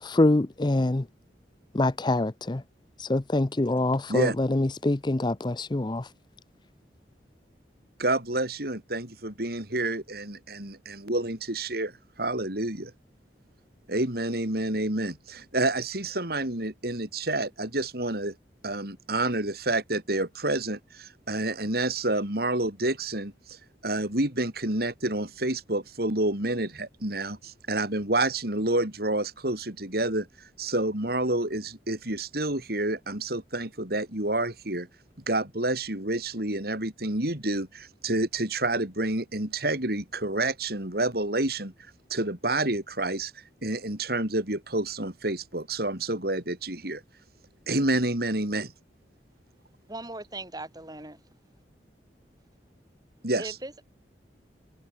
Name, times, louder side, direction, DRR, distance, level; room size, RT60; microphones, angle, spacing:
voice 1, 0.0-1.1 1.7-2.6 3.0-6.1, left 2 dB, 25° left, 0.6 m, -25 dB
voice 2, 8.0-12.9 13.9-18.3 18.6-23.6 23.8-30.3 30.6-34.9 35.3-41.7 42.1-43.3 43.6-47.0 47.7-48.7 53.2-53.5, right 2 dB, 60° right, 4.8 m, -29 dB
voice 3, 49.9-51.2 53.4-53.8, right 2 dB, 20° right, 6.8 m, -39 dB
head